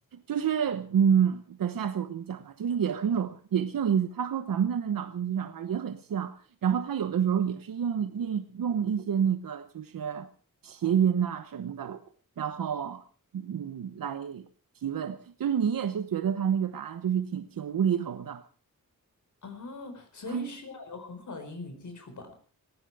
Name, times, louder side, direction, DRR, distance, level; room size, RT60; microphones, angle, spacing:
voice 1, 0.3-10.3 10.6-12.0 12.4-13.0 13.3-14.5 14.8-18.4 20.3-20.5, right 8 dB, 90° right, 1.0 m, -28 dB
voice 2, 19.4-22.3, left 2 dB, 60° left, 4.8 m, -41 dB
18.0 x 16.0 x 4.9 m
wide cardioid pair, 140°, 33 cm